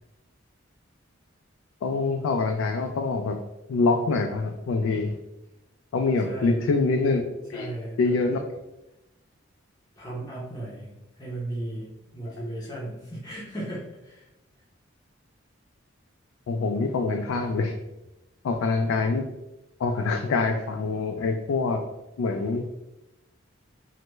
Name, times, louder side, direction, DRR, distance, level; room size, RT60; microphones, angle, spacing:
voice 1, 1.8-3.4 3.7-5.1 5.9-7.2 7.5-7.7 8.0-8.4 16.5-17.7 18.4-19.2 19.8-21.8 22.2-22.7, left 3 dB, 90° left, 4 dB, 0.3 m, -25 dB
voice 2, 6.2-6.6 7.5-8.1 10.0-14.3, right 1 dB, 20° left, -6 dB, 0.6 m, -36 dB
3.2 x 2.1 x 3.0 m, 0.95 s
head